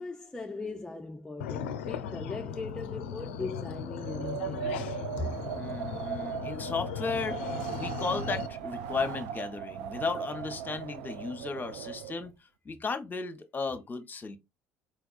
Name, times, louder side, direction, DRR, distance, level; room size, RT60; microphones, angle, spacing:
voice 1, 0.0-4.8 5.2-5.3, left 2 dB, 10° left, 0.5 m, -39 dB
sound 1, 1.4-8.5, left 8 dB, 80° left, 0.4 m, -38 dB
Wind, 3.9-12.3, right 9 dB, 75° right, 0.4 m, -38 dB
voice 2, 5.5-12.3 12.6-14.4, left 4 dB, 30° left, 0.9 m, -35 dB
4.5 x 3.4 x 2.4 m
hypercardioid pair, 65°, 6 cm